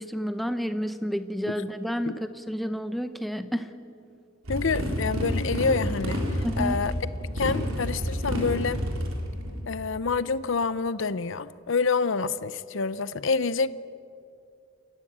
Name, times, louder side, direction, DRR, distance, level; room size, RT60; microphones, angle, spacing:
voice 1, 0.0-3.7 6.4-6.8, equal, ahead, 10 dB, 0.8 m, -30 dB
Motorcycle, 4.4-9.6, equal, 80° right, 3.8 m, -29 dB
voice 2, 4.5-6.9 7.3-8.8 9.7-13.7, left 4 dB, 65° left, 16 dB, 0.6 m, -27 dB
27.5 x 14.5 x 8.7 m, 2.5 s
head